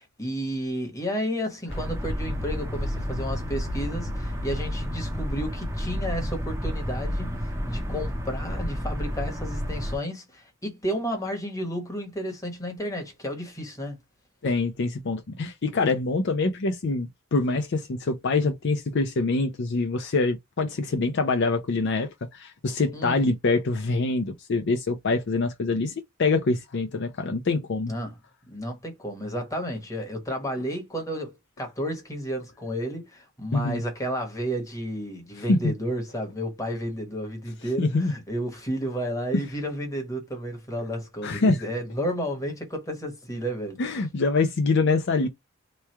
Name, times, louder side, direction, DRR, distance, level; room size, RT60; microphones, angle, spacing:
voice 1, 0.0-14.0 22.9-23.2 27.9-28.2 28.5-43.8, equal, 15° left, 1.2 m, -32 dB
sound 1, 1.7-10.0, equal, 15° right, 0.8 m, -30 dB
voice 2, 14.4-25.9 26.2-27.9 33.5-33.8 35.5-35.7 37.8-38.1 39.3-39.4 41.2-41.6 43.8-45.3, left 3 dB, 55° left, 0.5 m, -25 dB
3.1 x 2.3 x 4.3 m
head